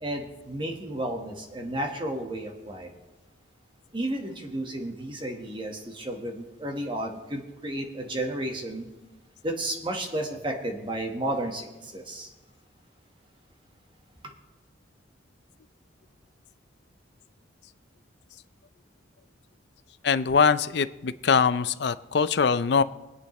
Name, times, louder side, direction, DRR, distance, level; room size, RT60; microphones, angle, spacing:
voice 1, 0.0-2.9 3.9-8.9 9.4-12.3, right 1 dB, 25° right, 2 dB, 1.4 m, -32 dB
voice 2, 20.0-22.8, left 5 dB, 55° left, 14 dB, 0.4 m, -22 dB
24.0 x 8.4 x 3.1 m, 1.1 s
head